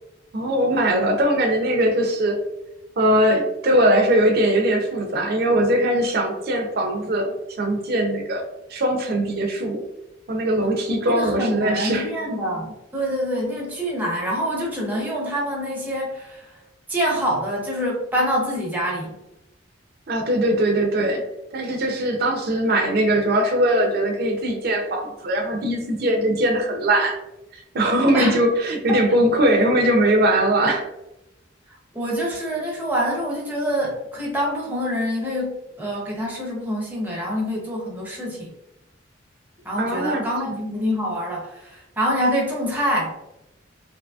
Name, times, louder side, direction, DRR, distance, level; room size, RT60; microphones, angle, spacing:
voice 1, 0.3-2.4 3.0-8.4 8.7-9.8 10.3-12.1 20.1-21.2 21.5-27.2 27.7-30.8 39.8-40.6, right 1 dB, 50° right, 3 dB, 0.5 m, -21 dB
voice 2, 11.0-16.5 16.9-19.2 28.1-28.4 31.9-38.5 39.6-43.1, equal, 10° right, -3 dB, 0.6 m, -26 dB
2.7 x 2.6 x 2.3 m, 0.91 s
head